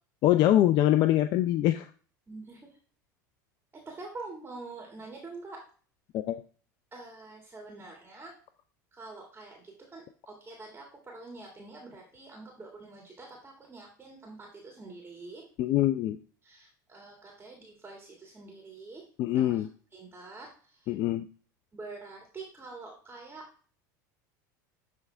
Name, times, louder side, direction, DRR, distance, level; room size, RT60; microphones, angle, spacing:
voice 1, 0.2-1.9 6.1-6.4 15.6-16.2 19.2-19.7 20.9-21.3, left 13 dB, 50° left, 9 dB, 0.5 m, -24 dB
voice 2, 2.3-2.6 3.9-5.6 6.9-8.3 9.0-9.5 9.9-15.4 16.5-19.0 19.4-19.5 19.9-20.5 21.7-23.4, right 3 dB, 20° right, 1 dB, 2.2 m, -45 dB
11.0 x 3.6 x 3.4 m, 0.40 s
hypercardioid pair, 90°, 10 cm